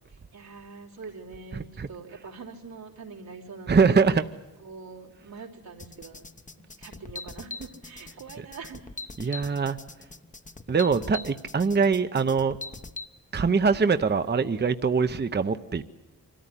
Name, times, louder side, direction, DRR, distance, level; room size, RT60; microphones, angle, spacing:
voice 1, 0.1-3.9 4.6-6.2 6.6-8.8 9.2-9.4, right 4 dB, 90° right, 3.3 m, -44 dB
voice 2, 1.5-1.9 3.7-4.2 9.2-9.8 10.7-12.6 13.3-15.8, right 5 dB, 30° right, 0.7 m, -23 dB
sound 1, 5.8-13.1, left 3 dB, 20° left, 0.9 m, -41 dB
24.5 x 14.0 x 9.9 m
cardioid pair, 55°, 35 cm